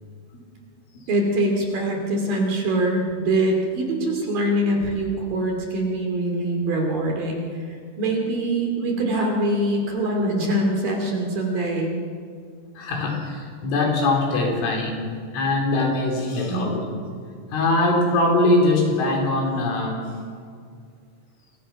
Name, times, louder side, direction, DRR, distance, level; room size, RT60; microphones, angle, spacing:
voice 1, 1.1-11.9 16.5-16.8, right 1 dB, 50° right, 1 dB, 3.9 m, -24 dB
voice 2, 12.8-16.8 17.5-20.2, left 2 dB, 70° left, 1 dB, 6.0 m, -22 dB
27.5 x 22.5 x 5.8 m, 2.1 s
omnidirectional pair, 5.9 m